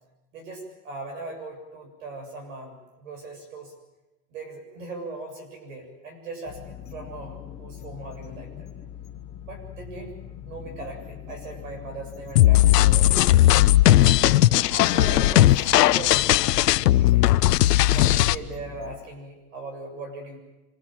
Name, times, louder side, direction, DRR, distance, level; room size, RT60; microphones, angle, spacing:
voice 1, 0.3-3.7 4.3-8.7 9.5-10.1 10.5-13.3 13.8-14.2 14.7-17.3 17.9-20.4, right 3 dB, 55° right, 3 dB, 7.6 m, -39 dB
sound 1, 6.5-19.0, left 10 dB, 15° left, 0.9 m, -41 dB
sound 2, 12.4-18.4, left 14 dB, 85° left, 0.9 m, -17 dB
25.5 x 24.0 x 7.6 m, 1.0 s
supercardioid pair, 180°, 47 cm